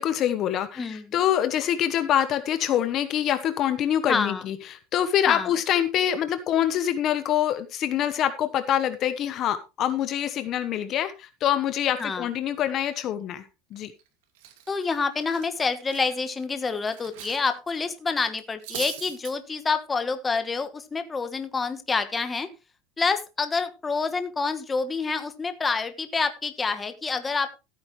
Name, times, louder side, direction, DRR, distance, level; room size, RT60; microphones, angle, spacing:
voice 1, 0.0-13.4 13.7-13.9, left 10 dB, 40° left, 11 dB, 1.0 m, -25 dB
voice 2, 0.8-1.1 4.1-4.4 5.3-5.5 12.0-12.3 14.7-22.5 23.0-27.5, left 4 dB, 15° left, 9 dB, 1.2 m, -27 dB
Cutlery silverware, 13.8-14.0 14.4-17.5 17.7-17.9 18.3-19.3, right 11 dB, 85° right, 2.5 m, -41 dB
14.5 x 8.9 x 3.2 m, 0.28 s
cardioid pair, 155°, 0 cm